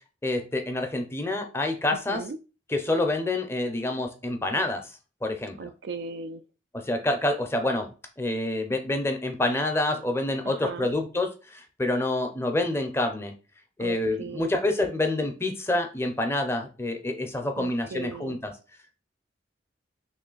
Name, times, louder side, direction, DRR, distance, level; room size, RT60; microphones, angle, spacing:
voice 1, 0.2-2.2 2.7-4.9 5.2-5.7 6.7-7.9 8.2-13.3 13.8-18.5, left 2 dB, 15° left, 0.5 m, -27 dB
voice 2, 1.9-2.4 5.6-6.4 10.4-10.9 13.8-14.6 17.6-18.4, right 4 dB, 60° right, 0.3 m, -38 dB
3.2 x 3.1 x 3.8 m
head